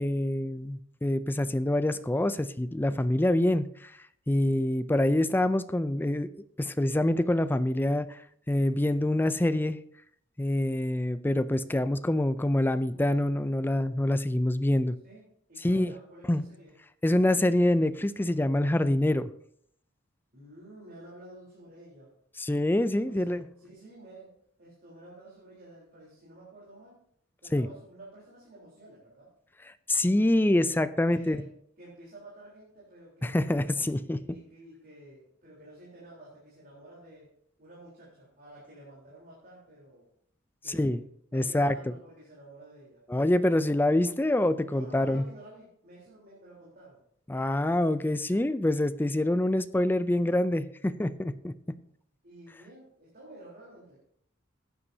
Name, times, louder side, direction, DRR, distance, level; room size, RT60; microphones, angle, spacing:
voice 1, 0.0-3.9 4.3-6.3 6.6-8.2 8.5-9.8 10.4-15.0 15.6-15.9 16.3-16.5 17.0-19.3 22.4-23.4 27.5-27.7 29.9-31.4 33.2-34.2 40.7-41.0 41.3-41.8 43.1-45.2 47.3-51.8, left 1 dB, 10° left, 13 dB, 0.4 m, -26 dB
voice 2, 15.0-16.7 20.3-22.1 23.0-27.0 27.4-29.3 31.0-31.5 31.8-33.5 34.1-37.3 37.6-40.1 40.6-41.0 41.3-43.0 44.7-47.0 52.2-54.0, right 1 dB, 50° right, -6 dB, 3.8 m, -51 dB
15.0 x 9.8 x 2.8 m, 0.67 s
head